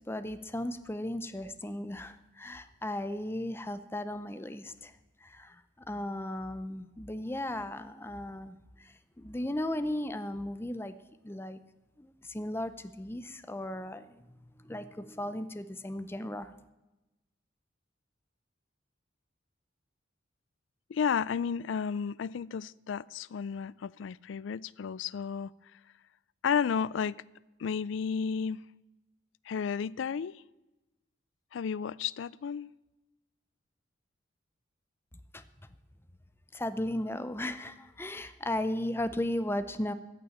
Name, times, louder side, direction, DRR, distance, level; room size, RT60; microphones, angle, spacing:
voice 1, 0.1-4.9 5.2-5.6 5.9-10.9 11.2-11.6 12.0-14.2 14.6-16.5 35.3-35.4 36.5-39.9, left 1 dB, 10° left, 0.6 m, -36 dB
voice 2, 20.9-25.5 26.4-27.2 27.6-28.6 29.5-30.4 31.5-32.7, left 6 dB, 75° left, 0.4 m, -32 dB
14.5 x 6.8 x 8.7 m
head